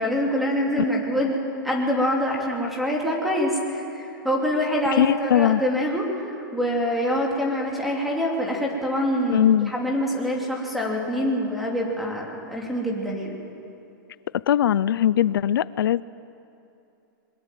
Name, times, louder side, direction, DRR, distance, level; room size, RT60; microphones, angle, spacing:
voice 1, 0.0-13.4, equal, ahead, -2 dB, 3.0 m, -25 dB
voice 2, 5.0-5.6 9.3-9.7 14.5-16.0, left 11 dB, 85° left, 18 dB, 0.5 m, -20 dB
22.5 x 21.0 x 9.2 m, 2.8 s
supercardioid pair, 170°, 11 cm